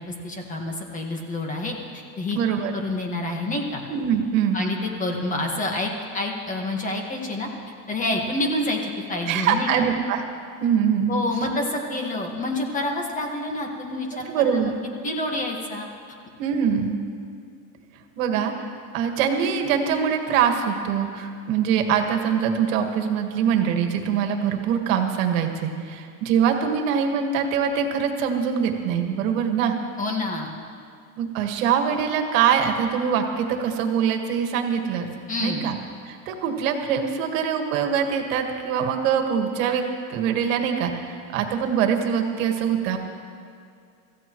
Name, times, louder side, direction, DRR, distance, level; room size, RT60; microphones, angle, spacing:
voice 1, 0.1-2.4 2.7-3.8 4.5-7.5 7.9-9.7 11.1-14.7 15.0-15.9 30.0-30.5 35.3-35.6, left 2 dB, 20° left, 1 dB, 1.6 m, -28 dB
voice 2, 2.3-2.7 3.9-4.6 9.3-10.2 10.6-11.2 14.1-14.8 16.4-17.0 18.2-18.5 18.9-29.8 31.2-35.1 35.4-35.8 36.1-39.8 40.1-43.0, right 7 dB, 75° right, 4 dB, 1.7 m, -23 dB
25.5 x 14.5 x 3.1 m, 2.4 s
supercardioid pair, 150°, 40 cm